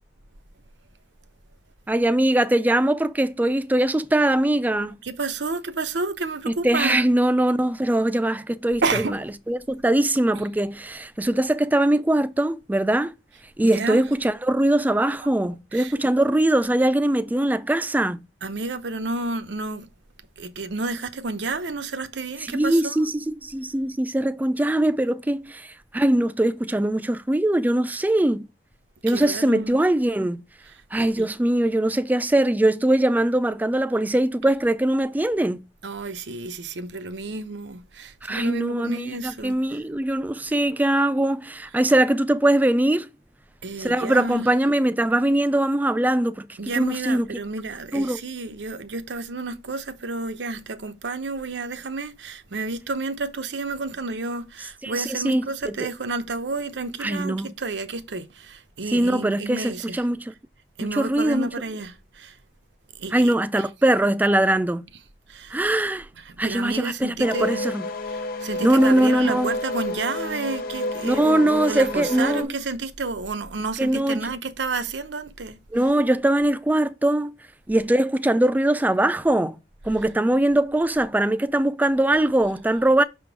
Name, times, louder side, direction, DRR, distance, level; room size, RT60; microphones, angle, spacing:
voice 1, 1.9-5.0 6.5-9.2 9.5-13.1 13.6-18.2 22.4-28.5 29.0-30.4 30.9-35.6 38.2-43.1 43.8-47.3 47.9-48.2 54.8-55.7 57.0-57.5 58.9-60.3 60.8-61.5 63.1-64.8 65.5-66.1 66.4-67.9 68.6-69.5 71.0-72.5 73.8-74.2 75.7-77.3 77.7-79.6 79.8-83.0, right 1 dB, 10° right, 0.3 m, -21 dB
voice 2, 5.0-7.0 8.8-9.2 13.6-14.0 15.7-16.0 18.4-19.9 20.4-23.0 29.1-29.8 31.0-31.3 35.8-39.8 43.6-44.5 46.6-60.0 60.8-62.4 62.9-63.4 65.3-65.6 66.2-67.6 68.1-75.6, right 3 dB, 85° right, 0.8 m, -30 dB
sound 1, 67.2-72.4, left 2 dB, 55° left, 0.9 m, -30 dB
5.9 x 3.7 x 5.9 m
head